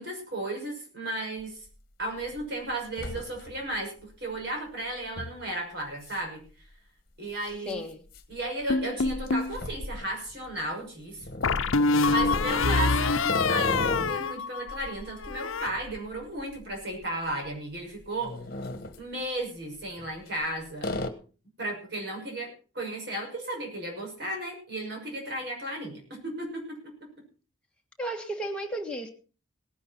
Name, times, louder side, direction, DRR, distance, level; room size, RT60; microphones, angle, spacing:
voice 1, 0.0-1.7 2.0-6.4 7.2-7.8 8.3-11.3 12.1-18.4 19.0-20.9 21.6-26.9, right 1 dB, 55° right, 1 dB, 6.1 m, -34 dB
sound 1, 1.4-1.5 2.0-2.4 2.7-3.8 4.1-4.2 5.2-5.4 6.0-6.2 6.5-6.6 7.5-10.6 11.2-14.3 14.7-17.0 17.3-17.5 18.0-19.0 19.9-20.5 20.8-21.1, left 1 dB, 50° left, 1.4 m, -36 dB
voice 2, 7.6-8.0 28.0-29.1, right 1 dB, 5° left, 0 dB, 1.7 m, -33 dB
sound 2, 8.7-9.5 11.4-14.9 15.2-15.7, left 4 dB, 85° left, 0.7 m, -25 dB
18.0 x 11.0 x 4.3 m, 0.37 s
head